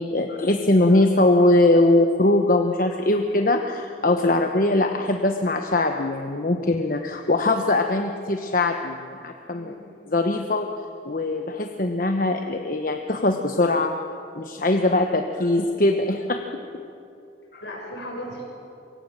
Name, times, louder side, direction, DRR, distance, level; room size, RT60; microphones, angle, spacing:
voice 1, 0.0-9.7 10.1-10.7 11.0-13.9 14.3-16.4 17.5-17.6, left 2 dB, 45° left, 5 dB, 1.1 m, -21 dB
voice 2, 9.5-10.0 16.4-16.5 17.6-18.4, equal, 70° left, -1 dB, 7.4 m, -37 dB
26.0 x 24.0 x 7.5 m, 2.7 s
head